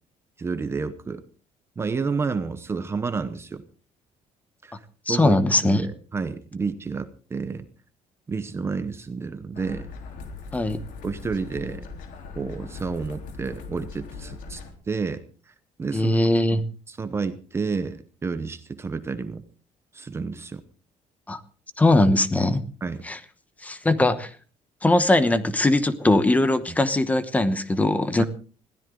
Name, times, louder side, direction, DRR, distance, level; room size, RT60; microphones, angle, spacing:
voice 1, 0.4-1.2 1.8-3.6 4.6-4.7 5.1-7.6 8.3-9.9 11.0-11.9 12.3-14.6 14.9-15.2 15.8-16.1 16.5-19.4 19.9-20.6 22.8-23.0 28.2-28.3, right 4 dB, 20° right, 11 dB, 0.9 m, -30 dB
voice 2, 5.1-5.8 10.5-10.8 15.9-16.6 21.3-21.4 21.8-22.6 23.0-23.2 23.6-24.3 24.8-28.3, left 2 dB, 10° left, 12 dB, 1.0 m, -20 dB
sound 1, 9.5-14.7, left 4 dB, 85° left, 3.6 m, -40 dB
21.0 x 15.5 x 3.8 m, 0.39 s
cardioid pair, 180°, 13 cm